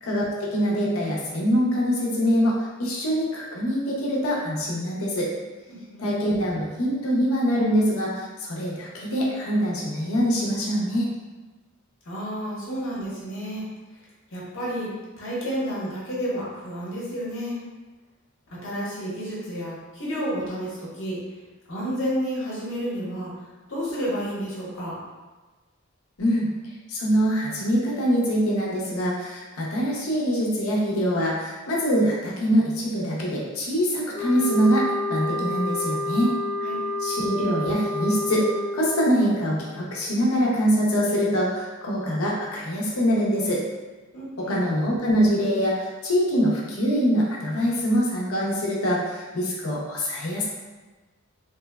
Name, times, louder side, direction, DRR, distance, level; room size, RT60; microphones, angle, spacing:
voice 1, 0.0-5.3 6.0-11.1 26.2-26.5 26.9-36.3 37.0-38.5 38.7-43.6 44.4-50.5, equal, 85° left, -4 dB, 0.6 m, -24 dB
voice 2, 5.7-6.1 12.1-13.7 14.3-14.9 15.2-17.6 18.5-21.2 21.7-23.3 23.7-25.0 36.6-36.8 44.1-44.6, equal, 65° left, -7 dB, 0.9 m, -30 dB
sound 1, 34.1-39.0, left 1 dB, 25° left, 0.5 m, -28 dB
3.0 x 2.0 x 2.2 m, 1.3 s
head